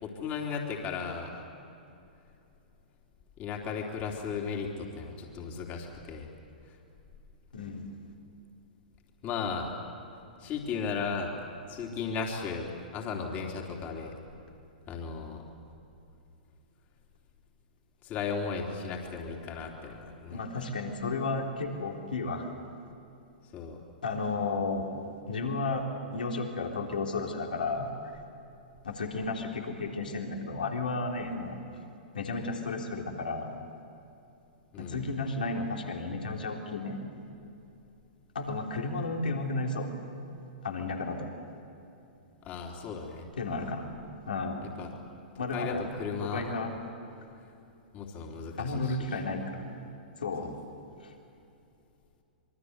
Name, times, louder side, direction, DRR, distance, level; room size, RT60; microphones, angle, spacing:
voice 1, 0.0-1.4 3.4-6.3 9.2-9.8 10.4-11.3 11.7-14.2 14.9-15.4 18.0-20.4 23.5-23.8 34.7-35.1 42.4-43.3 44.6-44.9 45.5-46.4 47.9-49.2 50.4-50.5, left 5 dB, 35° left, 0 dB, 3.5 m, -35 dB
voice 2, 7.5-7.9 20.3-22.5 24.0-24.9 25.3-25.8 26.1-27.9 28.8-31.6 32.1-33.5 34.8-37.0 38.4-39.9 40.6-41.3 43.4-43.9 44.3-44.6 45.4-45.8 46.2-46.7 48.6-49.7 50.2-50.5 51.0-51.1, left 3 dB, 75° left, 1 dB, 3.5 m, -33 dB
26.5 x 23.5 x 8.2 m, 2.7 s
figure-of-eight pair, 110°, 5 cm